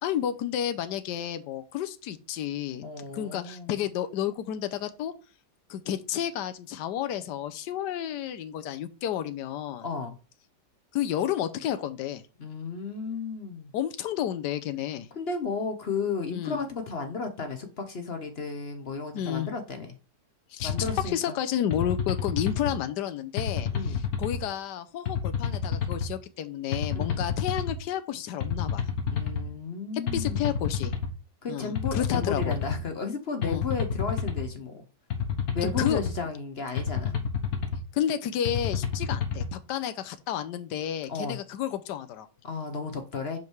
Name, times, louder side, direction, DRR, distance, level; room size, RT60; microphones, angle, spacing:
voice 1, 0.0-5.1 5.7-9.9 10.9-12.2 13.7-15.1 16.3-16.6 19.1-19.5 20.5-20.7 21.0-28.9 30.1-30.9 31.5-32.6 33.4-33.6 35.6-36.3 37.9-42.3, left 10 dB, 75° left, 1.3 m, -31 dB
voice 2, 2.8-3.8 9.8-10.2 12.4-13.7 15.1-20.0 20.6-21.4 22.6-22.8 23.7-24.0 26.9-27.2 29.1-30.5 31.4-34.8 35.5-37.2 41.1-41.4 42.4-43.4, left 4 dB, 45° left, 1.0 m, -34 dB
sound 1, 20.6-21.1 21.7-22.7 23.4-24.4 25.1-26.1 26.7-27.8 28.4-29.4 30.1-31.1 31.8-32.8 33.4-34.5 35.1-36.1 36.8-37.8 38.4-39.5, left 7 dB, 60° left, 1.5 m, -29 dB
5.4 x 5.2 x 4.6 m
omnidirectional pair, 1.9 m